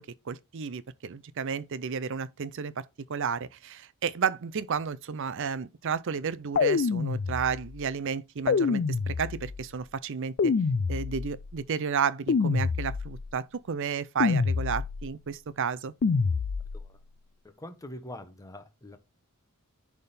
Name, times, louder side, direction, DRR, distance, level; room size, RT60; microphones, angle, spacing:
voice 1, 0.0-2.8 3.1-10.5 10.9-15.9, right 6 dB, 60° right, 0.5 m, -32 dB
sound 1, 6.6-7.8 8.5-9.6 10.4-11.5 12.3-13.3 14.2-15.1 16.0-16.9, left 5 dB, 50° left, 0.4 m, -27 dB
voice 2, 17.4-19.0, left 1 dB, 15° left, 0.9 m, -44 dB
10.5 x 3.6 x 4.2 m
head